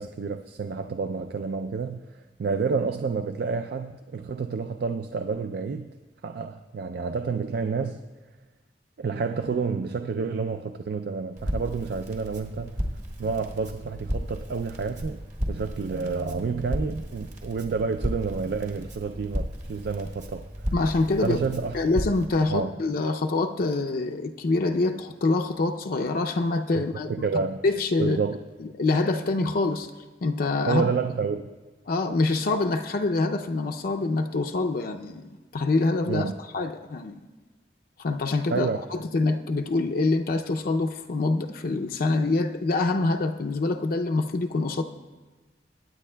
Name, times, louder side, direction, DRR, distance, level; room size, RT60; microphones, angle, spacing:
voice 1, 0.0-5.9 6.2-8.0 9.0-12.8 13.2-20.5 21.2-21.8 22.5-22.8 26.8-27.6 28.0-28.4 30.7-31.5 36.1-36.3 38.5-38.8, right 5 dB, 65° right, 8 dB, 0.4 m, -29 dB
Crackle, 11.4-22.3, equal, 45° right, 1.4 m, -34 dB
voice 2, 20.7-21.4 21.7-27.1 27.6-28.2 28.6-29.9 30.2-30.9 31.9-37.2 38.0-44.8, left 3 dB, 55° left, 4 dB, 0.5 m, -25 dB
22.0 x 9.1 x 2.2 m, 1.3 s
head